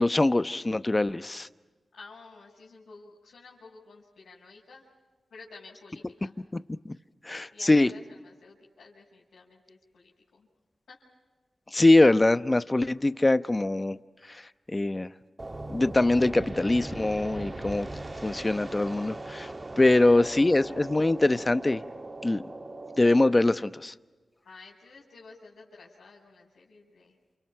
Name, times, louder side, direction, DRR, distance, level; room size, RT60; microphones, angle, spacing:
voice 1, 0.0-1.5 6.8-6.9 7.2-7.9 11.7-14.0 14.3-14.4 14.7-15.1 15.7-17.9 18.2-19.5 19.8-21.8 22.2-22.4 23.0-23.9, left 2 dB, 30° left, 13 dB, 0.9 m, -23 dB
voice 2, 1.9-4.9 5.3-6.4 7.5-10.5 10.9-11.0 20.1-20.8 24.4-27.2, left 3 dB, 85° left, -7 dB, 5.7 m, -51 dB
sound 1, 15.4-23.2, right 2 dB, 30° right, 1.5 m, -39 dB
29.5 x 28.0 x 5.7 m, 1.3 s
cardioid pair, 45°, 0 cm